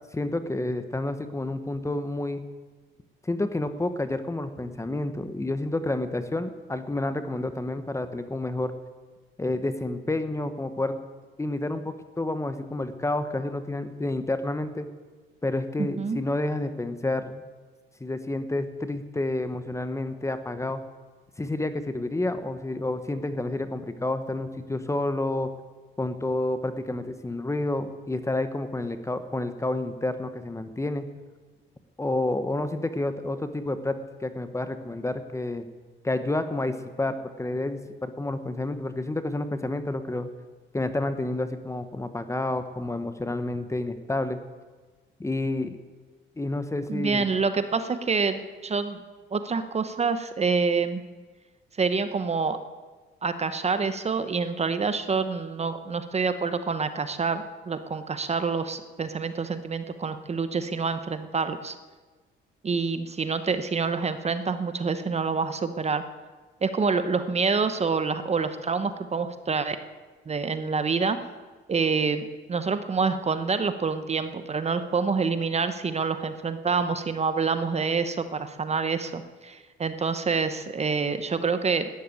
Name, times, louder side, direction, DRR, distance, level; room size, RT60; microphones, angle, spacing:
voice 1, 0.1-2.4 3.2-8.7 9.4-11.0 11.4-14.9 15.4-17.4 18.0-20.8 21.4-25.5 26.0-31.1 32.0-35.7 36.0-40.3 40.7-44.4 45.2-45.8 46.4-47.2, left 2 dB, 15° left, 10 dB, 1.0 m, -29 dB
voice 2, 15.8-16.2 46.9-49.0 49.3-51.0 51.8-52.6 53.2-61.7 62.6-66.0 66.6-69.8 70.3-71.2 71.7-81.9, right 5 dB, 30° right, 10 dB, 0.9 m, -27 dB
12.5 x 10.0 x 9.4 m, 1.3 s
cardioid pair, 110°, 21 cm